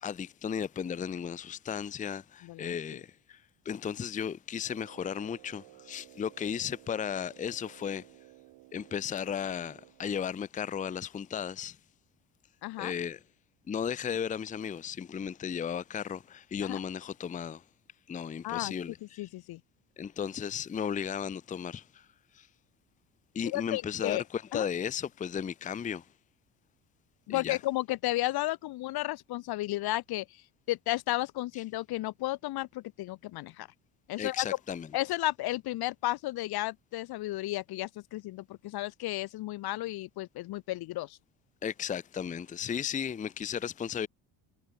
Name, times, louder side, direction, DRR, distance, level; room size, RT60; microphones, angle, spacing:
voice 1, 0.0-3.4 3.7-8.1 8.7-11.8 12.8-13.2 13.7-17.6 18.1-19.3 20.0-22.1 22.3-22.5 23.3-26.1 27.3-27.6 34.2-34.9 41.6-44.1, left 8 dB, 20° left, 0.5 m, -35 dB
voice 2, 2.4-2.7 12.6-12.9 16.6-16.8 18.4-18.7 19.0-19.6 23.4-24.2 24.5-24.7 27.3-33.7 34.1-34.5 34.9-41.2, left 17 dB, 60° left, 0.6 m, -33 dB
Brass instrument, 4.6-10.2, right 19 dB, 80° right, 6.4 m, -56 dB
cardioid pair, 95°, 43 cm